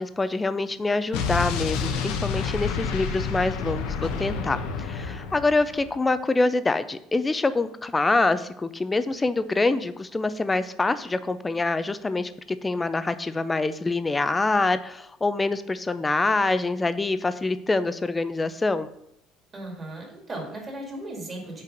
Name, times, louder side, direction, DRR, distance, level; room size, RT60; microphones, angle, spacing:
voice 1, 0.0-18.9, left 3 dB, 15° left, 13 dB, 0.4 m, -25 dB
Explosion, 1.1-5.9, left 5 dB, 85° left, 0.9 m, -29 dB
voice 2, 19.5-21.6, right 1 dB, 25° right, 0 dB, 2.0 m, -36 dB
5.7 x 4.6 x 5.1 m, 0.76 s
cardioid pair, 135°, 0 cm